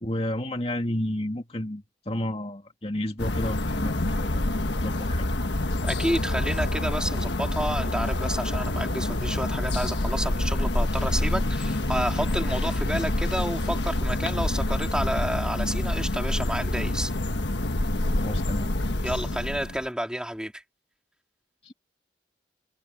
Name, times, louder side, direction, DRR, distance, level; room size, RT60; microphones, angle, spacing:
voice 1, 0.0-5.2 18.2-18.7 21.6-21.7, left 1 dB, 30° left, 2.4 m, -31 dB
sound 1, 3.2-19.8, left 1 dB, 70° left, 1.4 m, -27 dB
voice 2, 5.8-17.1 19.0-20.6, equal, 5° right, 3.7 m, -30 dB
head